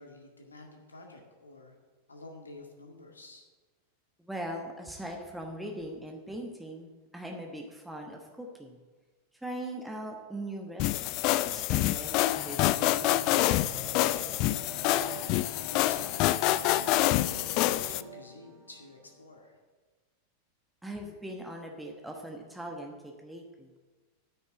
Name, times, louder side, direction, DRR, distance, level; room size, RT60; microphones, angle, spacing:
voice 1, 0.0-1.8 2.1-3.5 14.9-16.2 16.5-19.6, left 2 dB, 75° left, 2 dB, 1.9 m, -49 dB
voice 2, 4.2-8.8 9.4-11.0 11.2-13.4 20.8-23.7, right 1 dB, 5° right, 1 dB, 1.2 m, -40 dB
sound 1, 10.8-18.0, left 15 dB, 40° left, 0.4 m, -27 dB
sound 2, 12.4-19.3, equal, 30° right, 3.2 m, -47 dB
8.9 x 6.7 x 8.4 m, 1.3 s
figure-of-eight pair, 90°, 0 cm